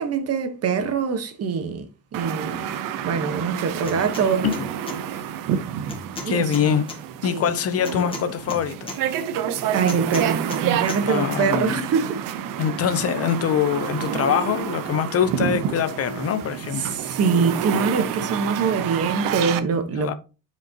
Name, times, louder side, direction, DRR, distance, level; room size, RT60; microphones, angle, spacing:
voice 1, 0.0-1.9 2.1-2.7 3.0-4.4 6.2-6.8 7.3-7.4 9.2-9.3 9.7-12.2 16.9-20.1, right 5 dB, 45° right, 1.4 m, -24 dB
sound 1, 2.1-19.6, right 9 dB, 65° right, 0.9 m, -29 dB
sound 2, 3.8-4.3 4.5-5.0 5.9-7.0 7.9-9.0 9.9-10.6 10.9-11.0, left 2 dB, 15° left, 2.0 m, -34 dB
voice 2, 6.3-6.9 7.2-8.9 11.1-11.8 12.6-17.0 20.0-20.1, left 8 dB, 45° left, 0.7 m, -24 dB
9.2 x 5.2 x 2.9 m
cardioid pair, 155°, 35 cm